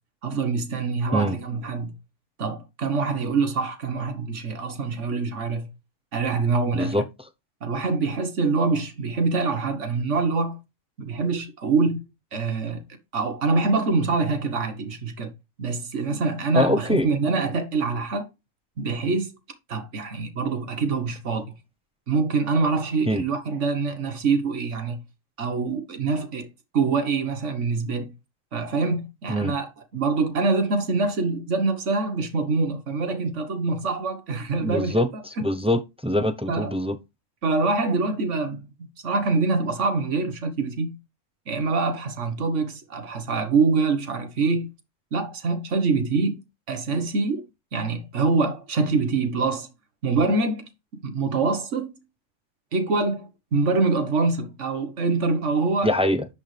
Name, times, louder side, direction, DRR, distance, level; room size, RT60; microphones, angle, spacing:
voice 1, 0.2-2.0 2.4-5.7 6.1-7.0 7.6-10.6 11.0-12.8 13.1-15.3 15.6-18.3 18.8-19.4 19.7-21.4 22.1-25.0 25.4-26.5 26.7-28.1 28.5-35.5 36.5-36.7 37.4-38.7 39.0-41.0 41.5-44.7 45.1-46.4 46.7-47.5 47.7-49.7 50.0-50.7 51.0-52.0 52.7-55.9, right 4 dB, 65° right, 1.7 m, -25 dB
voice 2, 6.7-7.0 16.5-17.1 23.1-23.2 29.3-29.5 34.6-37.0 55.8-56.3, left 1 dB, 10° right, 0.4 m, -23 dB
10.5 x 5.3 x 3.3 m
omnidirectional pair, 1.4 m